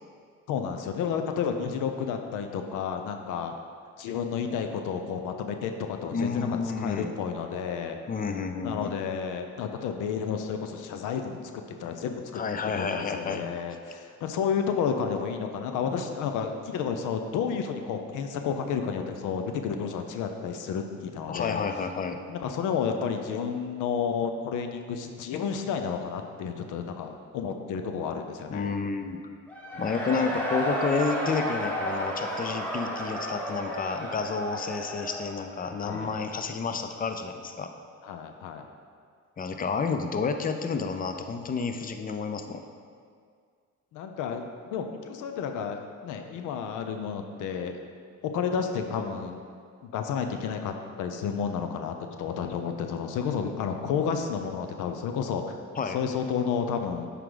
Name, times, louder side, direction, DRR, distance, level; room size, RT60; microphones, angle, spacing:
voice 1, 0.5-3.5 4.0-6.5 6.8-8.0 8.6-11.4 11.8-12.4 12.7-21.6 22.3-28.7 29.7-29.8 35.8-36.1 38.0-38.6 43.9-47.8 48.2-49.4 49.8-55.6 55.9-57.1, left 6 dB, 90° left, 6 dB, 0.6 m, -31 dB
voice 2, 6.1-7.1 8.1-9.0 12.3-13.5 21.3-22.2 28.5-29.2 29.8-37.7 39.4-42.6 55.8-56.0, left 5 dB, 30° left, 7 dB, 0.5 m, -30 dB
Cheering / Crowd, 29.5-36.2, equal, 5° left, 1.4 m, -33 dB
7.7 x 4.9 x 3.8 m, 2.1 s
cardioid pair, 90°, 30 cm